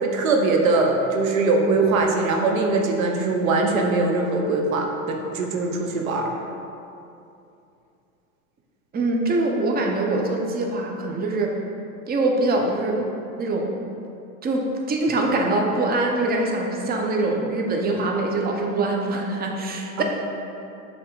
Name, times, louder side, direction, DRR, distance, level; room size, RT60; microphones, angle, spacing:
voice 1, 0.0-6.3 20.0-20.1, right 3 dB, 85° right, 2 dB, 0.8 m, -21 dB
voice 2, 8.9-11.6 12.1-13.1 13.4-13.7 14.4-20.0, right 2 dB, 25° right, 1 dB, 0.7 m, -23 dB
6.7 x 3.6 x 3.9 m, 2.7 s
hypercardioid pair, 85°, 40 cm